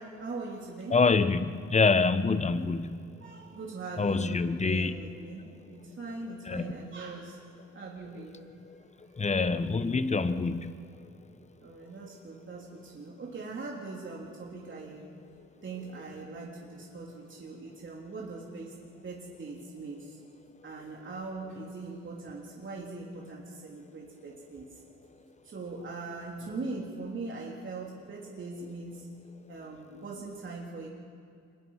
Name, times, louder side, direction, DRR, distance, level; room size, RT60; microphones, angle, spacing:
voice 1, 0.0-1.0 3.2-7.4 7.7-8.4 11.6-15.1 15.6-18.7 19.0-20.2 20.6-24.7 25.4-29.1 29.5-30.9, right 3 dB, 40° right, -3 dB, 3.3 m, -41 dB
voice 2, 0.9-3.1 4.0-4.9 6.5-6.7 9.2-10.7, left 4 dB, 25° left, 12 dB, 1.0 m, -26 dB
25.5 x 21.0 x 5.7 m, 2.3 s
cardioid pair, 90°, 30 cm